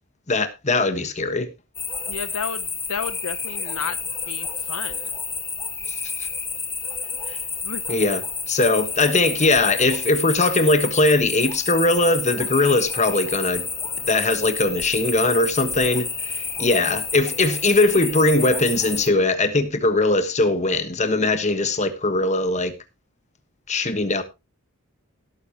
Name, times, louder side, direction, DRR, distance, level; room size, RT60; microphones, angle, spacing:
voice 1, 0.3-1.5 5.9-6.0 7.3-7.4 7.9-8.2 8.5-13.6 14.1-16.1 16.6-22.7 23.7-24.2, left 2 dB, 30° left, 1.4 m, -20 dB
sound 1, 1.7-19.1, left 5 dB, 10° left, 0.7 m, -30 dB
voice 2, 2.1-2.6 2.9-4.0 4.3-5.0 7.6-7.8, left 6 dB, 75° left, 0.9 m, -31 dB
17.0 x 8.5 x 3.0 m
head